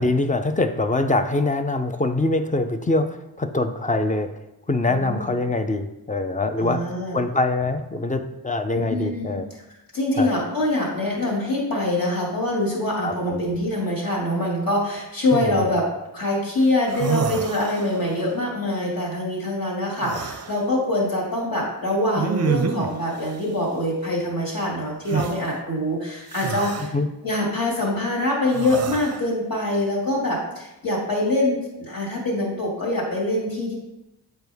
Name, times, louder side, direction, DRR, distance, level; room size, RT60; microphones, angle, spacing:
voice 1, 0.0-4.3 4.7-6.8 7.1-9.5 10.2-10.3 13.0-13.4 15.3-15.6 26.9-27.1, left 2 dB, 20° left, 8 dB, 0.5 m, -24 dB
voice 2, 4.9-5.4 6.6-7.2 8.7-9.4 9.9-15.9 16.1-26.9 27.2-33.8, left 1 dB, 55° left, -3 dB, 2.3 m, -24 dB
sound 1, 16.6-16.7 16.9-18.1 20.0-20.6 22.1-23.0 25.1-25.3 26.3-26.9 28.5-29.2, right 6 dB, 40° right, 0.5 m, -27 dB
7.8 x 4.5 x 3.5 m, 0.93 s
wide cardioid pair, 85°, 40 cm